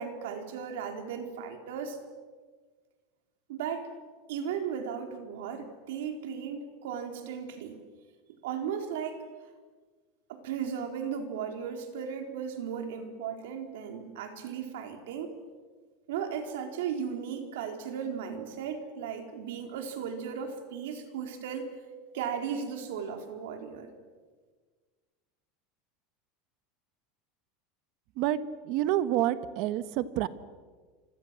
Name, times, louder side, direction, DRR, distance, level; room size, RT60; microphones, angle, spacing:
voice 1, 0.0-2.0 3.5-3.9 4.3-7.8 8.4-9.2 10.3-15.4 16.1-21.8 22.1-23.9, right 7 dB, 80° right, 5 dB, 4.4 m, -36 dB
voice 2, 28.7-30.3, right 13 dB, 45° right, 13 dB, 1.3 m, -28 dB
28.0 x 25.5 x 7.7 m, 1.5 s
supercardioid pair, 175°, 0 cm